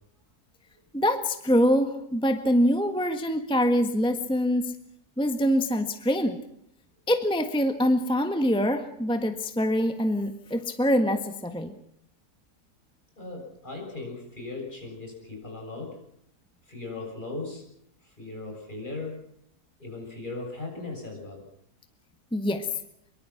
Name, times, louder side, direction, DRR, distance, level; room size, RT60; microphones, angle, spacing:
voice 1, 0.9-4.7 5.2-6.4 7.1-11.7 22.3-22.7, equal, 5° left, 8 dB, 1.4 m, -24 dB
voice 2, 13.2-16.0 16.6-17.7 18.0-19.3 19.8-21.5, left 3 dB, 30° left, 0 dB, 7.7 m, -38 dB
24.0 x 23.0 x 5.9 m, 0.73 s
omnidirectional pair, 1.7 m